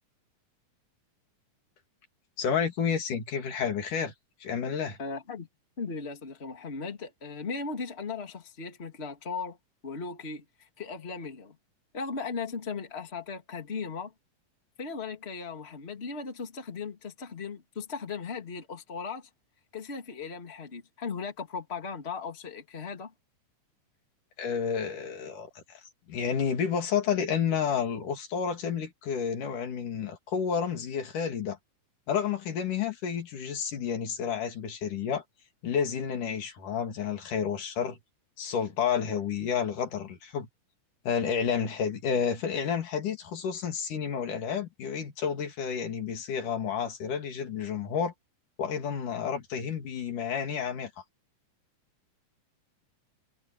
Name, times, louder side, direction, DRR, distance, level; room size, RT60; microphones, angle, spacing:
voice 1, 2.4-4.1 4.4-5.0 24.4-25.5 26.1-31.6 32.1-35.2 35.6-38.0 38.4-40.5 41.1-48.1 48.6-50.9, left 7 dB, 70° left, 4.0 m, -30 dB
voice 2, 5.0-5.5 5.8-9.6 9.8-11.6 11.9-14.1 14.8-19.3 19.7-23.1, left 5 dB, 20° left, 2.6 m, -37 dB
omnidirectional pair, 3.8 m